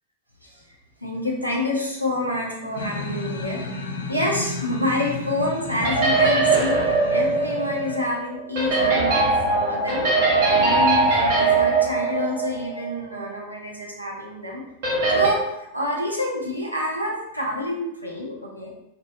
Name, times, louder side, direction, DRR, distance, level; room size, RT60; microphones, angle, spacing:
voice 1, 0.4-6.8 7.1-10.1 10.5-14.6 15.1-18.7, left 1 dB, 90° right, -3 dB, 0.5 m, -28 dB
sound 1, 2.8-8.0, left 3 dB, 65° left, 0.3 m, -33 dB
sound 2, 5.8-12.9 13.2-13.3 14.8-15.3, right 3 dB, 50° right, 0.8 m, -21 dB
2.7 x 2.2 x 2.2 m, 0.85 s
figure-of-eight pair, 90°, 0 cm